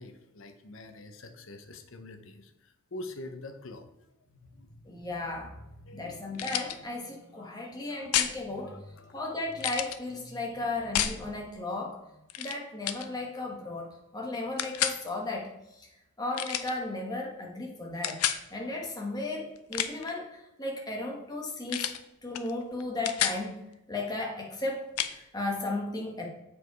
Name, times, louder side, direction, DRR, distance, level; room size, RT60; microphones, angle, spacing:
voice 1, 0.0-3.9 4.3-4.7 5.9-6.1 7.4-8.1 8.6-9.2, left 2 dB, 60° left, 7 dB, 0.8 m, -46 dB
voice 2, 4.9-5.6 5.9-8.8 9.1-12.0 12.4-15.5 15.8-15.9 16.2-18.2 18.5-21.9 22.2-23.5 23.9-26.3, left 2 dB, 15° left, -1 dB, 1.3 m, -35 dB
sound 1, 6.3-6.8 8.1-8.4 9.6-10.0 10.9-11.2 12.3-12.6 12.8-13.1 14.6-15.0 16.3-16.7 18.0-18.4 19.6-20.1 21.7-22.0 22.3-22.5 22.8-23.4 25.0-25.1, left 10 dB, 85° left, 0.5 m, -30 dB
7.4 x 4.8 x 4.7 m, 0.92 s
head